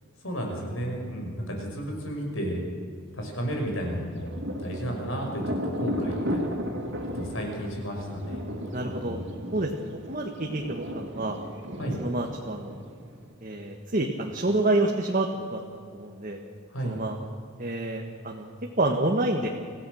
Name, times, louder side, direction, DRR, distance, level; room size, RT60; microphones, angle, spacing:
voice 1, 0.2-2.6 3.1-6.5 7.1-9.3 11.8-12.0 16.7-17.0, equal, 75° left, 1 dB, 5.6 m, -33 dB
Thunder, 3.8-13.3, equal, 60° right, 3.0 m, -35 dB
voice 2, 8.7-9.2 9.5-9.7 10.1-11.4 12.0-12.8 13.4-16.4 16.8-17.2 17.6-18.5 18.8-19.5, right 2 dB, 40° right, 1 dB, 1.5 m, -28 dB
25.5 x 16.5 x 6.4 m, 2.3 s
head